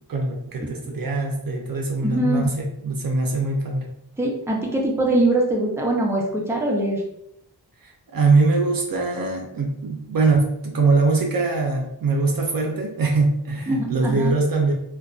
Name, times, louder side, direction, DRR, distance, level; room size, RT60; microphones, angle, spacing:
voice 1, 0.1-3.9 7.8-14.7, right 3 dB, 55° right, 1 dB, 0.5 m, -22 dB
voice 2, 2.0-2.5 4.2-7.0 13.7-14.3, right 1 dB, 5° right, -2 dB, 0.6 m, -22 dB
2.5 x 2.2 x 2.3 m, 0.77 s
wide cardioid pair, 65°, 41 cm